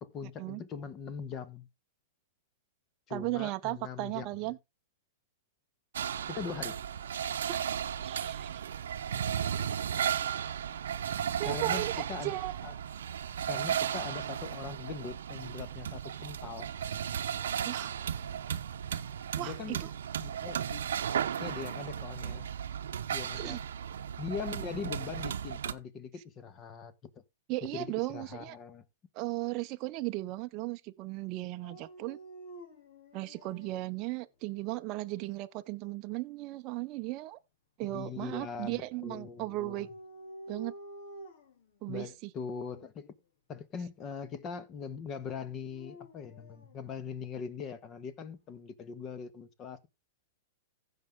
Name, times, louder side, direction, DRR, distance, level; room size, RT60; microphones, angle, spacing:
voice 1, 0.0-1.7 3.1-4.5 6.3-6.8 11.4-12.4 12.6-12.7 13.5-16.7 19.4-19.8 20.2-20.9 21.4-22.5 23.1-23.6 24.2-26.9 27.7-28.8 37.9-39.9 41.9-43.1 43.5-49.9, left 6 dB, 25° left, 1.3 m, -41 dB
voice 2, 3.1-4.6 7.5-7.6 8.0-8.7 11.4-12.6 17.7-17.9 19.4-19.9 23.4-23.6 27.5-28.6 29.1-32.2 33.1-37.4 37.8-39.9 40.5-40.7 41.8-42.3, right 19 dB, 35° right, 0.6 m, -36 dB
sound 1, 5.9-25.7, right 9 dB, 85° right, 0.8 m, -35 dB
Dog, 31.6-33.8 34.5-35.2 39.3-41.6 42.4-42.9 45.5-46.7, right 1 dB, 60° left, 2.5 m, -50 dB
15.5 x 5.5 x 3.6 m
hypercardioid pair, 140°, 0 cm